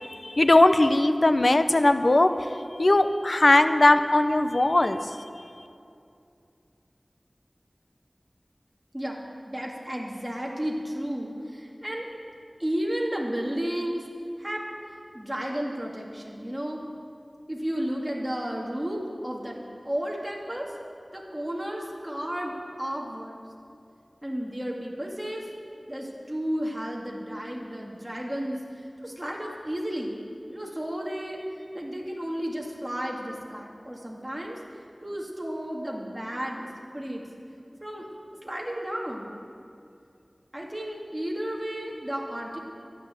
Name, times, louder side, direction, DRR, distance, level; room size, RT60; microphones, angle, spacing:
voice 1, 0.0-2.3 2.8-5.0, left 2 dB, 60° left, 9 dB, 0.7 m, -19 dB
voice 2, 9.5-12.1 12.6-14.0 14.4-16.8 17.5-20.8 21.1-23.4 24.2-25.5 25.9-30.2 30.5-34.6 35.0-37.2 37.8-38.1 38.4-39.4 40.5-42.6, equal, 15° right, -2 dB, 2.1 m, -33 dB
13.5 x 10.5 x 7.6 m, 2.5 s
wide cardioid pair, 50°, 0 cm